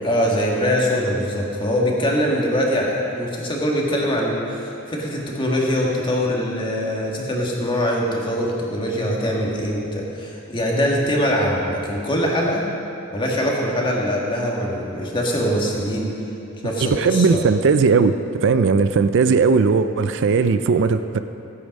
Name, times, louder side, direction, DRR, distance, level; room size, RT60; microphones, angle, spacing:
voice 1, 0.0-12.6 13.1-16.1 16.6-17.4, equal, 25° left, -2 dB, 1.9 m, -22 dB
voice 2, 16.8-21.2, right 5 dB, 60° right, 11 dB, 0.4 m, -18 dB
15.5 x 8.7 x 5.4 m, 2.8 s
head